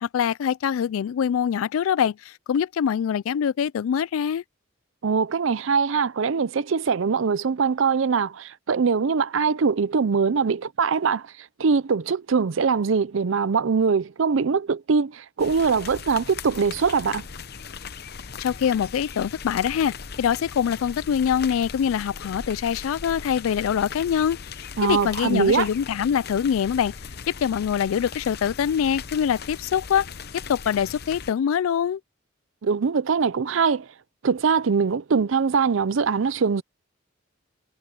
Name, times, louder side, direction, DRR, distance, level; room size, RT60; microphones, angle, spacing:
voice 1, 0.0-4.4 18.4-26.9 27.3-30.1 30.3-32.0, left 8 dB, 80° left, 0.3 m, -24 dB
voice 2, 5.0-11.3 11.6-17.2 24.8-25.7 32.6-33.9 34.2-36.6, right 5 dB, 70° right, 0.5 m, -22 dB
sound 1, 15.4-31.3, left 6 dB, 50° left, 0.8 m, -38 dB
head